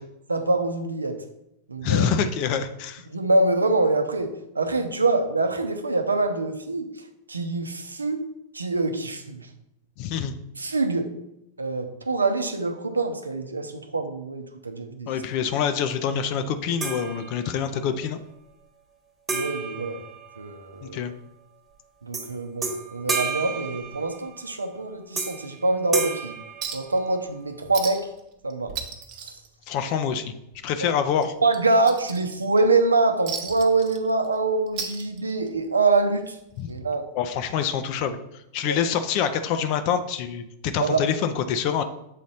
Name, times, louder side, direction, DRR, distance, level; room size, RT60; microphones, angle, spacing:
voice 1, 0.3-1.2 1.7-2.1 3.1-6.9 7.3-8.2 8.5-9.5 10.6-11.1 11.6-15.1 19.3-20.0 20.4-21.0 22.0-26.4 26.7-28.1 28.4-28.7 31.4-36.4 36.7-37.0 38.6-38.8 40.8-41.0, right 3 dB, 80° right, 7 dB, 0.7 m, -24 dB
voice 2, 1.8-3.0 10.0-10.3 15.1-18.2 20.8-21.1 29.7-30.3 30.6-31.3 36.6-36.7 37.2-38.2 38.5-41.8, left 8 dB, 45° left, 9 dB, 0.5 m, -26 dB
sound 1, 16.8-17.8 19.3-20.9 22.1-22.3 22.6-24.4 25.2-25.6 25.9-27.4, right 4 dB, 15° right, 1.2 m, -32 dB
Chink clink, 26.6-27.0 27.3-27.4 27.7-28.2 28.5-30.2 30.5-30.7 31.2-32.6 33.3-34.4 34.7-35.6 36.7-36.8, right 7 dB, 40° right, 1.0 m, -35 dB
7.4 x 4.1 x 4.0 m, 0.84 s
figure-of-eight pair, 90°, 0 cm